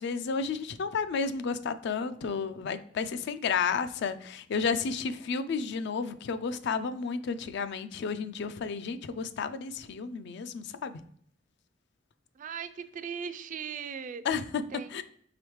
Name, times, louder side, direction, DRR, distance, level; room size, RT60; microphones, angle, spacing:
voice 1, 0.0-11.0 14.2-14.6 14.9-15.0, left 5 dB, 65° left, 12 dB, 0.4 m, -32 dB
voice 2, 12.4-14.2 14.7-14.9, right 7 dB, 45° right, 11 dB, 0.3 m, -38 dB
4.9 x 3.5 x 3.0 m, 0.63 s
head